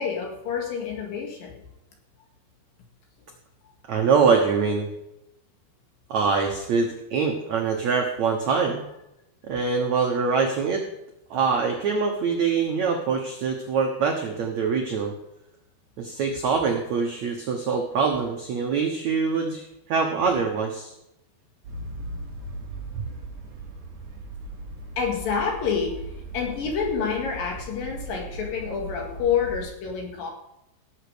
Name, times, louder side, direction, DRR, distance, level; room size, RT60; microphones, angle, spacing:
voice 1, 0.0-1.5 25.0-26.0 26.3-30.3, left 6 dB, 60° left, 2 dB, 3.2 m, -28 dB
voice 2, 3.9-4.9 6.1-8.8 9.5-10.8 11.3-15.1 16.0-20.9 22.9-23.0, right 5 dB, 85° right, 2 dB, 1.5 m, -24 dB
sound 1, 21.6-29.6, right 2 dB, 45° right, 4.0 m, -38 dB
17.5 x 7.3 x 5.1 m, 0.88 s
omnidirectional pair, 5.1 m